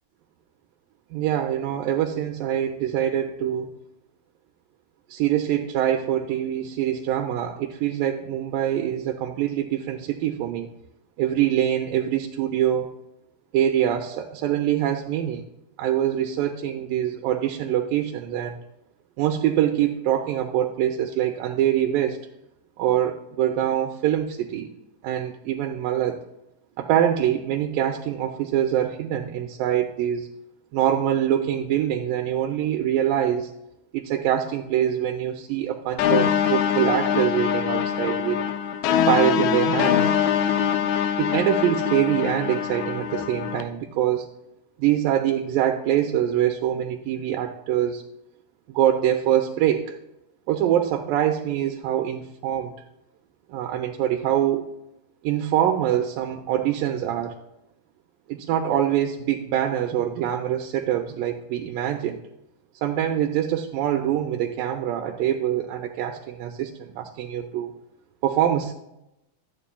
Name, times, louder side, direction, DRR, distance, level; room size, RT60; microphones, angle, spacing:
voice 1, 1.1-3.7 5.1-10.7 11.2-12.9 13.5-15.4 15.8-18.6 19.2-22.2 22.8-24.7 25.0-26.2 26.8-30.3 30.7-33.5 33.9-38.4 39.1-40.0 41.2-44.3 44.8-48.0 48.7-49.9 50.5-52.7 53.5-54.7 55.2-57.4 58.3-62.2 62.8-67.7 68.2-68.7, right 11 dB, 90° right, 3 dB, 2.4 m, -24 dB
sound 1, 36.0-43.6, left 9 dB, 80° left, 1.8 m, -23 dB
12.5 x 9.1 x 2.2 m, 0.87 s
omnidirectional pair, 3.9 m